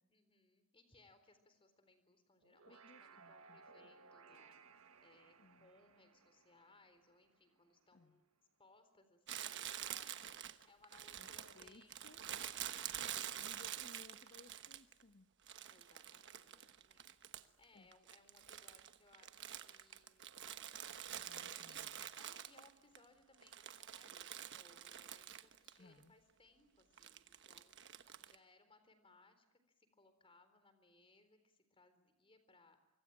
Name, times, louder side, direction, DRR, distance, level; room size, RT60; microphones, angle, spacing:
voice 1, 0.1-4.6 5.0-8.2 8.6-10.1 10.6-12.2 12.6-13.7 15.7-20.3 21.2-21.8 22.2-32.8, left 2 dB, 25° left, 10 dB, 4.0 m, -68 dB
sound 1, 2.4-7.9, right 5 dB, 85° right, 1.6 m, -63 dB
voice 2, 2.6-3.9 5.4-5.7 7.9-8.2 11.1-12.2 13.4-15.3 17.7-17.9 21.1-22.0 25.8-26.1, left 3 dB, 50° left, 6 dB, 1.2 m, -63 dB
Crumpling crinkling, 9.3-15.0 15.5-17.6 17.9-23.0 23.3-25.8 26.0-26.1 27.0-28.4, right 10 dB, 60° right, 1.2 m, -47 dB
25.0 x 24.5 x 8.9 m, 0.93 s
head